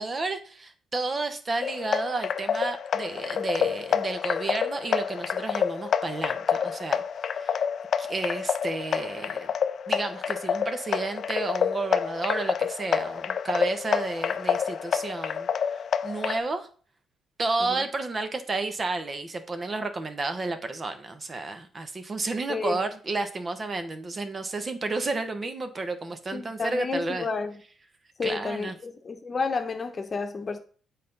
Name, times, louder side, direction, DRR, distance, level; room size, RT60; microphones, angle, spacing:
voice 1, 0.0-7.0 7.3-7.6 8.0-9.5 9.9-16.7 17.4-27.3 28.2-28.8, right 3 dB, 35° right, 1.0 m, -31 dB
sound 1, 1.6-16.4, left 7 dB, 60° left, 0.5 m, -28 dB
voice 2, 26.3-27.6 28.2-30.6, left 4 dB, 35° left, 1.0 m, -31 dB
7.5 x 4.2 x 5.4 m
cardioid pair, 90°, 0 cm